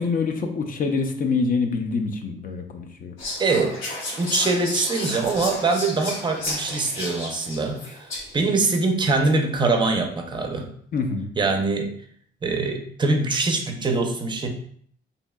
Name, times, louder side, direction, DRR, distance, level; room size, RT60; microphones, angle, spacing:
voice 1, 0.0-3.1 10.9-11.3, left 4 dB, 45° left, 4 dB, 0.5 m, -25 dB
Whispering, 3.2-8.5, left 1 dB, 80° left, 1.0 m, -32 dB
voice 2, 3.4-3.8 4.2-8.0 8.3-10.7 11.4-11.9 12.4-14.5, right 3 dB, 25° right, 4 dB, 0.5 m, -23 dB
2.8 x 2.7 x 2.2 m, 0.62 s
cardioid pair, 90°, 20 cm